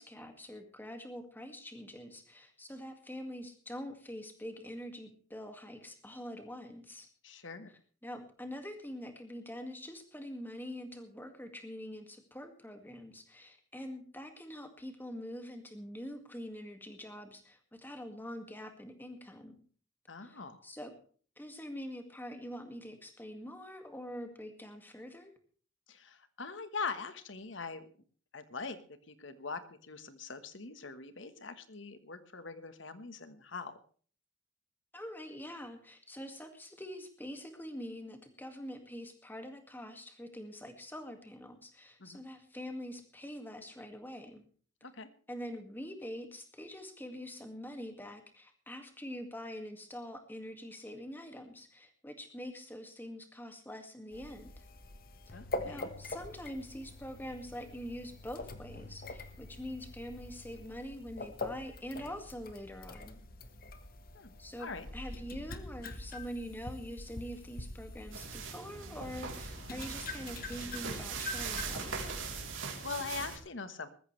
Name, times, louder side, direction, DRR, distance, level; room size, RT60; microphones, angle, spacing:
voice 1, 0.0-7.1 8.0-19.6 20.2-20.9 21.4-25.3 34.9-44.4 45.3-54.6 55.3-55.4 55.6-63.2 64.4-72.1, equal, 10° left, 6 dB, 2.0 m, -45 dB
voice 2, 7.2-7.8 20.1-20.6 25.9-27.8 28.3-28.8 29.1-33.8 42.0-42.2 44.8-45.1 55.3-55.9 64.1-64.3 64.6-64.9 72.5-73.9, left 4 dB, 75° left, 11 dB, 1.4 m, -42 dB
sound 1, 54.1-68.5 69.0-72.5, left 2 dB, 45° left, 1.3 m, -44 dB
sound 2, 68.1-73.4, right 5 dB, 80° right, 3.5 m, -41 dB
20.5 x 14.0 x 3.3 m, 0.43 s
head